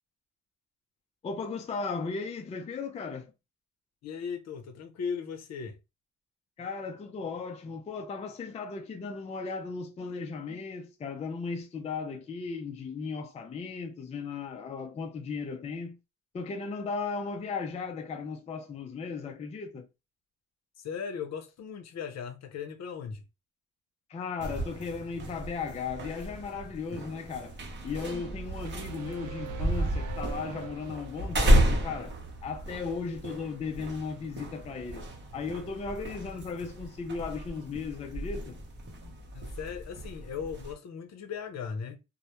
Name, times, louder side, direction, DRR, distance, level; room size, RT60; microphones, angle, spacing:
voice 1, 1.2-3.3 6.6-16.0 16.3-19.9 24.1-32.2 32.4-38.6, left 4 dB, 20° left, 0.3 m, -36 dB
voice 2, 4.0-5.8 20.8-23.2 39.3-42.0, left 6 dB, 60° left, 0.6 m, -37 dB
sound 1, 24.4-40.7, right 1 dB, 35° right, 0.8 m, -32 dB
sound 2, 28.6-31.6, right 6 dB, 80° right, 0.5 m, -42 dB
2.1 x 2.1 x 2.9 m
cardioid pair, 90°, 30 cm